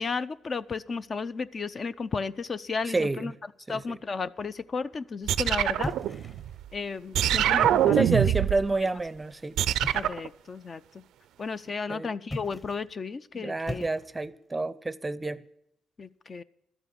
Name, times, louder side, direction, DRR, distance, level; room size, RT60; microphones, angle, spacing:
voice 1, 0.0-3.3 3.7-5.9 6.7-8.0 9.9-10.8 11.4-13.8 16.0-16.4, left 4 dB, 40° left, 0.4 m, -33 dB
voice 2, 2.8-3.3 3.7-4.0 7.9-9.6 11.9-12.1 13.3-15.4, right 2 dB, 15° right, 0.5 m, -29 dB
sound 1, 5.3-6.6 7.1-8.7 9.6-10.3, right 11 dB, 80° right, 0.4 m, -24 dB
sound 2, 5.8-6.6 7.5-8.2 9.8-10.3 12.2-12.9 13.7-14.4, left 1 dB, 15° left, 1.1 m, -39 dB
12.0 x 8.2 x 8.7 m
cardioid pair, 90°, 0 cm